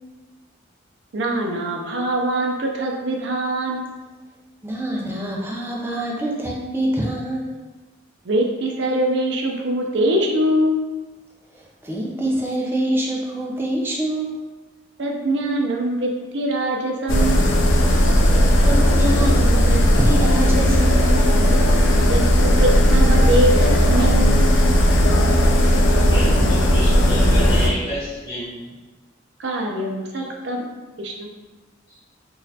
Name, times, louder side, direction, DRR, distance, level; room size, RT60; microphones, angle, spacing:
voice 1, 1.1-3.9 8.3-10.8 15.0-17.7 22.1-24.5 29.4-30.6 31.0-31.3, right 1 dB, 60° right, 0 dB, 0.5 m, -23 dB
voice 2, 4.6-7.6 11.8-14.4 18.6-21.2, right 1 dB, 10° right, -3 dB, 0.4 m, -25 dB
sound 1, 17.1-27.7, equal, 75° left, 0.5 m, -16 dB
voice 3, 26.1-28.8 30.1-30.2 31.9-32.0, equal, 25° left, -12 dB, 0.8 m, -30 dB
3.9 x 2.4 x 2.7 m, 1.2 s
head